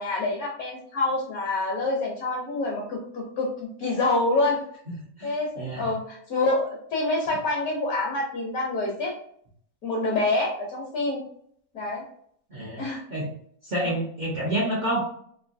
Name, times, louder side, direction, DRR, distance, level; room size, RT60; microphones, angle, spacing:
voice 1, 0.0-3.5 3.8-4.6 5.2-9.1 9.8-11.2 11.7-12.0 12.8-13.0 13.8-13.9, left 2 dB, 65° left, -2 dB, 1.2 m, -26 dB
voice 2, 5.2-5.9 12.5-12.8 13.1-13.3 13.6-15.0, right 1 dB, 60° right, -5 dB, 0.4 m, -28 dB
3.1 x 2.7 x 2.5 m, 0.64 s
omnidirectional pair, 1.8 m